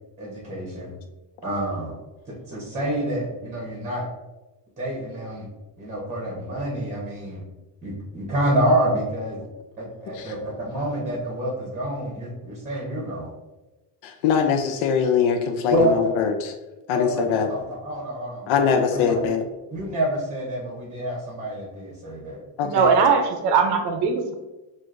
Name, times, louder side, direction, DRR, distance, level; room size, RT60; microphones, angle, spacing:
voice 1, 0.2-0.9 1.4-2.0 2.3-4.1 4.8-5.5 5.8-7.4 7.8-9.4 9.8-13.3 15.7-16.0 16.9-19.2 19.7-22.4 22.7-22.8, right 1 dB, 15° right, -3 dB, 0.9 m, -27 dB
voice 2, 14.0-16.5 16.9-17.5 18.5-19.4 22.6-22.9, left 6 dB, 90° left, 6 dB, 0.6 m, -22 dB
voice 3, 22.6-24.3, right 5 dB, 60° right, 5 dB, 0.6 m, -20 dB
6.1 x 2.5 x 2.5 m, 1.1 s
cardioid pair, 170°, 46 cm